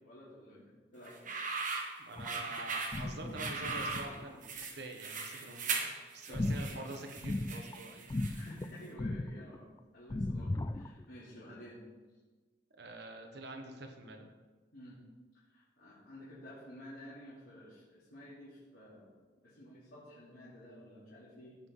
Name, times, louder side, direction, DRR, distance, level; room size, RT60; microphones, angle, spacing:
voice 1, 0.0-1.2 2.2-2.5 3.6-4.0 4.7-4.8 5.7-5.8 6.3-6.5 8.3-11.8 14.7-15.0 15.5-19.1 19.4-21.6, left 1 dB, 70° left, -10 dB, 3.3 m, -52 dB
sound 1, 1.1-8.6, right 4 dB, 45° right, 1.4 m, -39 dB
voice 2, 2.0-5.7 6.1-8.1 12.7-14.3, right 2 dB, 65° right, 3 dB, 1.4 m, -46 dB
sound 2, 2.2-2.6 2.9-4.6 6.3-7.8 8.1-8.7 9.0-9.7 10.1-11.0, left 2 dB, 20° left, 0.3 m, -37 dB
16.0 x 5.8 x 3.9 m, 1.3 s
head